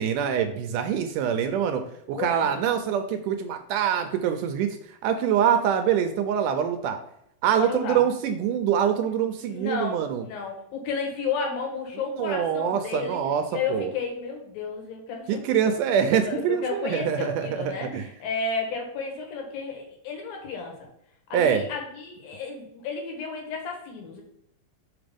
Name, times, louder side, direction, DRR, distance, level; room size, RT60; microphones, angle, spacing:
voice 1, 0.0-1.8 2.1-4.8 5.0-7.0 7.4-10.2 12.2-13.4 13.7-13.9 15.3-18.1 21.3-21.6, right 8 dB, 80° right, 7 dB, 2.0 m, -24 dB
voice 2, 2.1-2.6 7.6-8.1 9.5-10.0 10.3-13.2 13.5-15.7 16.2-20.9 21.3-24.2, left 5 dB, 85° left, 1 dB, 3.3 m, -32 dB
6.1 x 5.0 x 5.1 m, 0.74 s
omnidirectional pair, 4.0 m